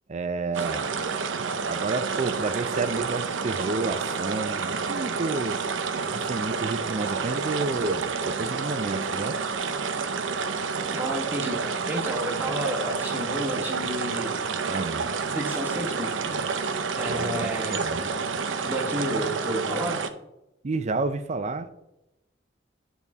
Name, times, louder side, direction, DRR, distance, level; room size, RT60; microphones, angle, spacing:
voice 1, 0.1-0.9 1.7-5.6 6.1-9.4 14.6-15.1 17.1-18.1 20.6-21.7, right 3 dB, 35° right, 11 dB, 0.4 m, -30 dB
sound 1, 0.5-20.1, right 5 dB, 80° right, 0.6 m, -29 dB
voice 2, 10.9-14.4 15.3-16.6 17.0-17.8 18.6-20.0, right 1 dB, 10° right, -1 dB, 1.4 m, -31 dB
10.5 x 4.1 x 3.5 m, 0.90 s
head